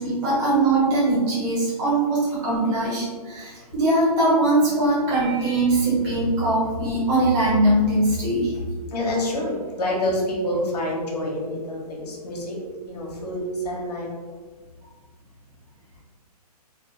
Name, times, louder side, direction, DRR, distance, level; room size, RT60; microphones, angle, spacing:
voice 1, 0.0-8.5, right 2 dB, 15° right, -8 dB, 0.9 m, -21 dB
voice 2, 8.9-12.6 12.9-14.1, left 1 dB, 75° left, -3 dB, 1.0 m, -27 dB
3.3 x 2.1 x 3.1 m, 1.5 s
hypercardioid pair, 165°, 20 cm